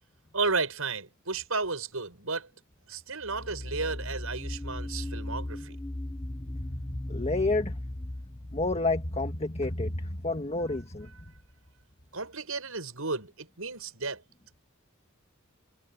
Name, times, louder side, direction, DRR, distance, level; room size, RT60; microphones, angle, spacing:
voice 1, 0.3-2.5 2.9-5.8 12.1-14.2, right 4 dB, 80° right, 7.3 m, -33 dB
sound 1, 3.2-9.8, left 1 dB, 15° left, 0.6 m, -37 dB
voice 2, 7.1-7.8 8.5-11.1, left 2 dB, 30° left, 1.5 m, -29 dB
head